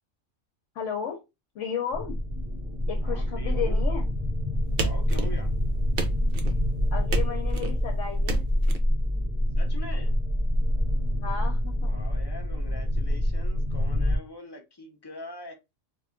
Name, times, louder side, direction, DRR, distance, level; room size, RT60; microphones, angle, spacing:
voice 1, 0.7-1.2 1.5-2.2 2.9-4.0 6.9-8.5 11.2-11.9, left 7 dB, 70° left, 0 dB, 0.9 m, -33 dB
sound 1, 1.9-14.2, equal, 35° right, 0.8 m, -26 dB
voice 2, 3.0-3.9 4.8-5.5 9.6-10.2 11.8-15.5, left 1 dB, 35° left, 2 dB, 0.4 m, -43 dB
sound 2, 4.8-5.6 6.0-6.6 7.1-7.7 8.3-8.8, right 4 dB, 60° right, 0.5 m, -31 dB
2.4 x 2.2 x 3.5 m, 0.24 s
omnidirectional pair, 1.3 m